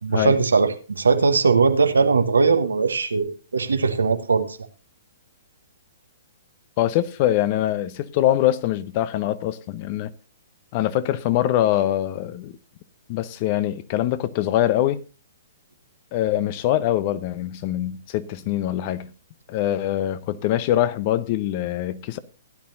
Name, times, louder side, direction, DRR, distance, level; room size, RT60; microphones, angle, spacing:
voice 1, 0.0-4.6, right 4 dB, 75° right, 1.2 m, -20 dB
voice 2, 6.8-10.1 10.7-12.6 13.1-15.0 16.1-19.1 19.5-22.2, left 13 dB, 40° left, 0.9 m, -23 dB
16.0 x 10.5 x 2.7 m
figure-of-eight pair, 120°, 0 cm